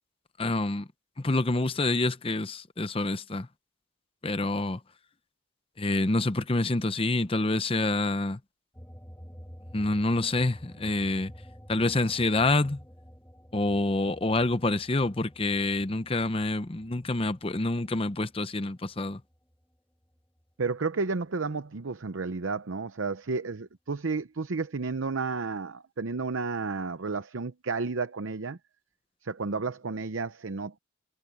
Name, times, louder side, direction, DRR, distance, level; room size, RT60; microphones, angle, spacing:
voice 1, 0.4-0.9 1.2-3.5 4.2-4.8 5.8-8.4 9.7-11.3 11.7-12.8 13.5-19.2, left 2 dB, 25° left, 0.7 m, -27 dB
sound 1, 8.7-19.6 20.0-21.5, equal, 10° left, 1.5 m, -51 dB
voice 2, 20.6-28.6 29.2-30.8, right 4 dB, 75° right, 0.7 m, -32 dB
head